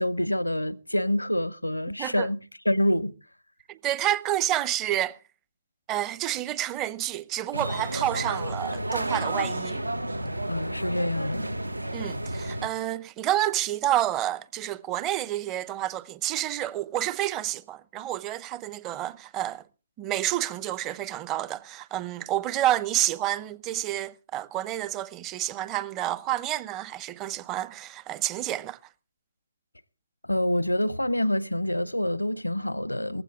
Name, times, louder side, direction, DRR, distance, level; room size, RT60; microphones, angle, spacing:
voice 1, 0.0-2.4 2.6-3.1 10.5-11.6 30.2-33.2, left 1 dB, 90° left, 0.8 m, -26 dB
voice 2, 3.7-5.2 5.9-9.8 11.9-19.6 20.0-28.8, right 13 dB, 20° right, 0.6 m, -29 dB
sound 1, 7.5-12.7, right 1 dB, 85° right, 0.8 m, -31 dB
19.0 x 15.0 x 3.6 m
figure-of-eight pair, 130°, 0 cm